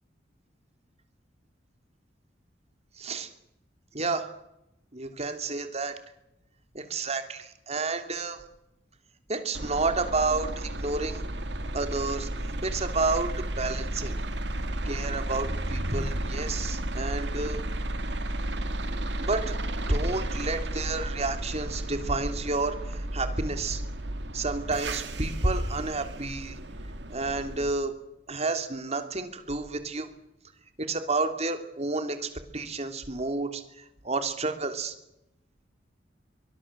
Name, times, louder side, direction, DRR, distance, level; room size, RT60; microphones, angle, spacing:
voice 1, 3.0-3.3 3.9-4.3 4.9-5.9 6.7-8.4 9.3-11.2 11.7-12.3 12.6-14.1 14.8-17.6 19.2-19.5 19.9-23.8 24.3-26.6 27.1-27.9 28.3-30.1 30.9-34.9, right 3 dB, 35° right, 7 dB, 3.1 m, -30 dB
sound 1, 9.5-27.7, right 1 dB, 70° right, 2.1 m, -33 dB
24.5 x 21.0 x 7.5 m, 0.87 s
head